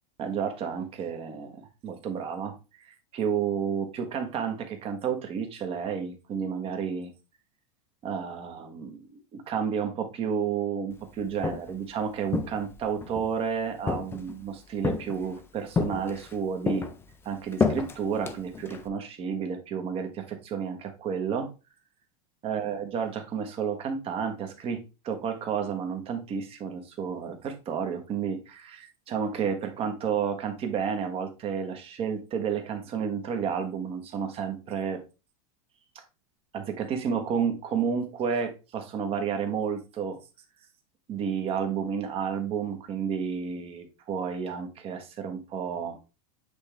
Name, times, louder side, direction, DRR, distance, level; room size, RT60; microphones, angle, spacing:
voice 1, 0.2-7.1 8.0-9.0 9.3-16.8 17.3-21.5 22.4-35.0 35.9-36.0 36.5-40.2 41.1-46.0, right 7 dB, 35° right, 1.3 m, -31 dB
Walk footsteps, 11.2-11.8 12.3-13.3 13.9-14.4 14.8-15.4 15.8-16.4 16.7-18.9, left 4 dB, 15° left, 0.6 m, -30 dB
8.2 x 3.5 x 3.4 m
supercardioid pair, 145°, 18 cm